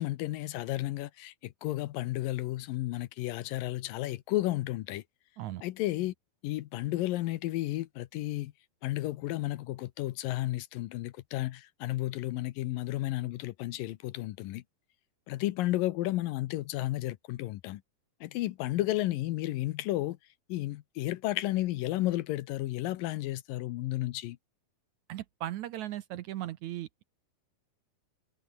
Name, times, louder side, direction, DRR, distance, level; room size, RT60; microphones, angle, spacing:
voice 1, 0.0-5.0 5.6-6.1 6.4-8.5 8.8-14.6 15.3-17.8 18.2-20.2 20.5-24.4, left 16 dB, 75° left, 2.4 m, -32 dB
voice 2, 25.1-27.0, right 14 dB, 75° right, 1.8 m, -37 dB
omnidirectional pair, 4.3 m